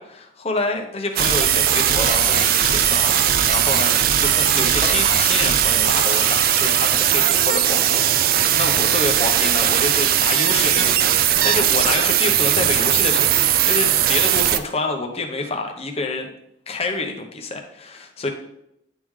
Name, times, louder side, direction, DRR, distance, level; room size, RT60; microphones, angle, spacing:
voice 1, 0.0-16.3 16.7-18.3, left 3 dB, 30° left, 3 dB, 0.8 m, -27 dB
sound 1, 1.2-14.6, right 10 dB, 50° right, 0.3 m, -18 dB
sound 2, 1.9-7.1, right 1 dB, 35° right, 1.3 m, -31 dB
10.0 x 3.6 x 3.2 m, 0.79 s
head